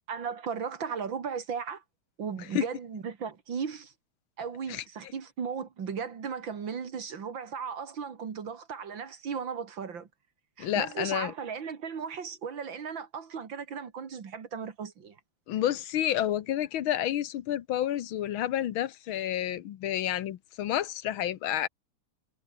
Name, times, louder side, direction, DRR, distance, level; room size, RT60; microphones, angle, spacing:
voice 1, 0.1-1.8 2.2-3.9 4.4-10.1 10.6-15.2, right 6 dB, 65° right, 2.8 m, -36 dB
voice 2, 10.6-11.3 15.5-21.7, left 11 dB, 80° left, 1.7 m, -30 dB
omnidirectional pair, 2.3 m